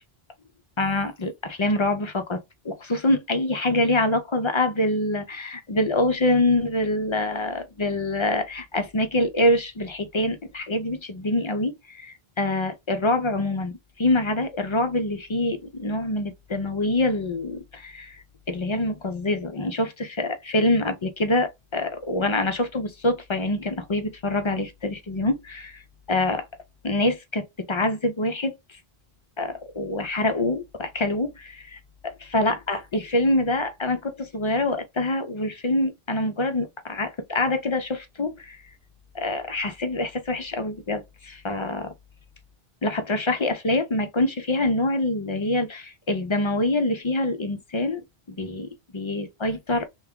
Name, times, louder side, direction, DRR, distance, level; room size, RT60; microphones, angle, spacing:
voice 1, 0.8-25.8 26.1-26.5 26.8-28.8 29.4-31.8 32.3-38.6 39.1-41.9 42.8-48.7 48.9-49.9, left 2 dB, 45° left, 0.4 m, -25 dB
3.3 x 2.4 x 3.5 m
omnidirectional pair, 1.1 m